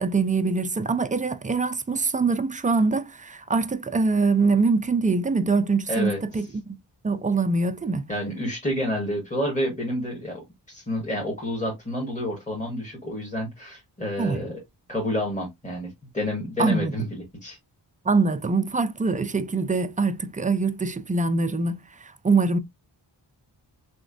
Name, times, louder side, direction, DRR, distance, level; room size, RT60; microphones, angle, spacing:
voice 1, 0.0-6.8 7.0-8.0 14.2-14.4 16.6-16.9 18.1-22.6, right 4 dB, 20° right, 0.3 m, -24 dB
voice 2, 8.1-14.6 14.9-17.6, left 1 dB, 15° left, 1.2 m, -29 dB
3.6 x 3.0 x 2.4 m
wide cardioid pair, 90°, 42 cm